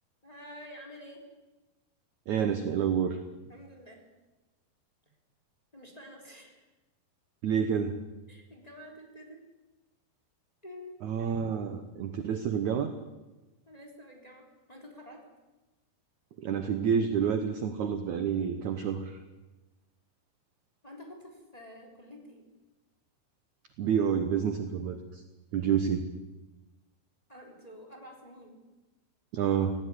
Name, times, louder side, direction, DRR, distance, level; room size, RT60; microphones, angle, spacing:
voice 1, 0.2-1.2 3.5-4.0 5.7-6.7 8.3-9.4 10.6-11.0 13.7-15.2 20.8-22.5 27.3-28.6, equal, 10° left, 1 dB, 3.4 m, -49 dB
voice 2, 2.3-3.2 7.4-8.0 11.0-12.9 16.4-19.2 23.8-25.2 25.5-26.1 29.3-29.8, right 7 dB, 65° right, 8 dB, 2.1 m, -28 dB
19.5 x 16.5 x 9.9 m, 1.1 s
omnidirectional pair, 4.5 m